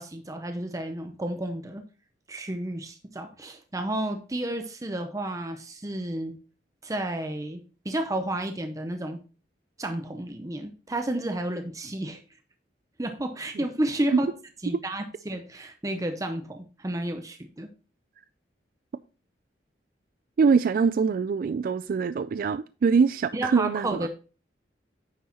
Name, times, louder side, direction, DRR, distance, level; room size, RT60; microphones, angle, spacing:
voice 1, 0.0-1.8 2.3-6.4 6.8-9.2 9.8-12.2 13.0-14.3 14.6-17.7 23.3-24.1, right 1 dB, 20° right, 0.7 m, -31 dB
voice 2, 20.4-24.1, right 5 dB, 50° right, 0.3 m, -23 dB
9.5 x 6.3 x 2.9 m
head